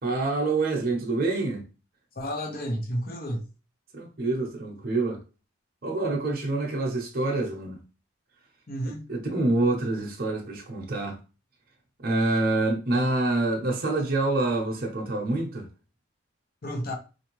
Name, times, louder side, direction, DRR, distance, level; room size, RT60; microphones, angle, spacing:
voice 1, 0.0-1.7 3.9-5.2 5.8-7.8 9.1-11.2 12.0-15.7, right 2 dB, 45° right, 0.8 m, -26 dB
voice 2, 2.1-3.5 8.7-9.1 16.6-16.9, equal, 45° left, 0.9 m, -31 dB
4.5 x 2.6 x 3.0 m
head